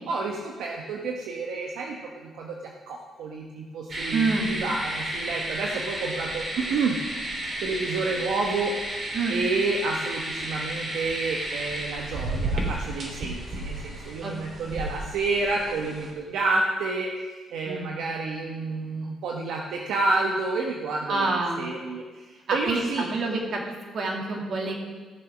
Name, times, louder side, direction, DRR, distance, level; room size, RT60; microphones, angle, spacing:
voice 1, 0.1-7.0 7.6-23.4, right 3 dB, 80° right, 0 dB, 1.1 m, -30 dB
sound 1, 3.9-16.1, right 1 dB, 45° right, 3.4 m, -32 dB
voice 2, 4.1-4.5 9.1-9.3 14.2-14.3 17.6-17.9 21.1-21.6 22.5-23.6 23.9-24.7, right 3 dB, 60° right, 0 dB, 2.6 m, -27 dB
14.5 x 7.1 x 6.2 m, 1.4 s
cardioid pair, 90°, 0 cm